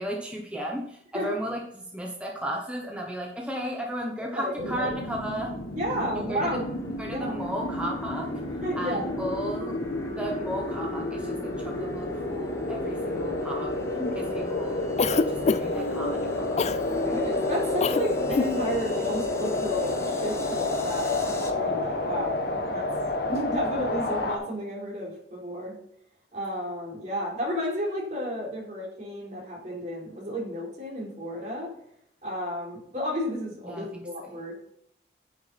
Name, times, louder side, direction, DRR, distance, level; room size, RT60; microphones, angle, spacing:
voice 1, 0.0-5.5 6.1-6.6 6.8-8.3 8.8-9.8 10.1-13.7 14.1-16.7 33.6-34.3, equal, 5° right, -1 dB, 1.2 m, -35 dB
voice 2, 4.3-4.9 5.7-6.6 7.1-7.3 8.6-9.1 14.0-14.3 17.0-22.9 23.2-25.8 26.3-31.7 32.2-34.7, equal, 45° right, -4 dB, 4.1 m, -32 dB
sound 1, 4.6-24.4, left 2 dB, 60° left, 1.4 m, -30 dB
sound 2, 6.6-21.5, left 2 dB, 15° left, 0.9 m, -38 dB
Cough, 15.0-15.9 16.6-16.8 17.8-18.0 18.3-18.5, left 4 dB, 40° left, 0.4 m, -24 dB
10.0 x 6.0 x 4.2 m, 0.73 s
head